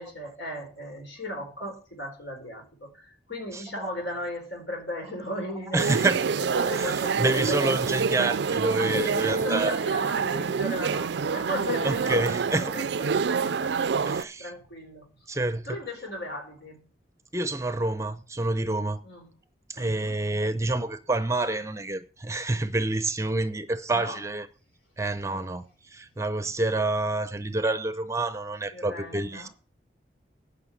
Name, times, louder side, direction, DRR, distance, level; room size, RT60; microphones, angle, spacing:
voice 1, 0.0-5.9 6.5-7.8 8.8-12.1 12.7-15.1 15.7-16.8 19.0-19.3 19.8-20.2 23.9-24.2 25.2-25.5 28.7-29.5, left 1 dB, 80° left, 3.9 m, -37 dB
voice 2, 3.5-3.9 5.7-6.2 6.7-9.8 11.8-12.7 14.1-14.5 15.3-15.7 17.3-19.0 19.7-24.5 25.0-29.5, right 2 dB, 15° right, 0.6 m, -28 dB
sound 1, 5.8-14.2, right 5 dB, 70° right, 0.4 m, -27 dB
9.9 x 5.6 x 7.2 m
head